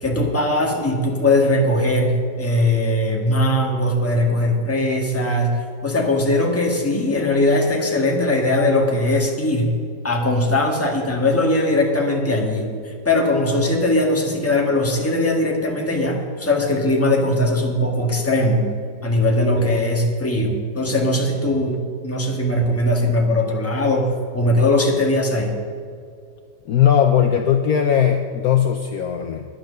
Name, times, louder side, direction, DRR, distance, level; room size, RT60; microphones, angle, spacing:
voice 1, 0.0-9.7 10.0-18.7 19.0-25.6, left 1 dB, 10° left, 0 dB, 1.4 m, -20 dB
voice 2, 26.7-29.4, left 9 dB, 65° left, 5 dB, 1.1 m, -18 dB
10.5 x 10.5 x 6.6 m, 2.2 s
omnidirectional pair, 1.9 m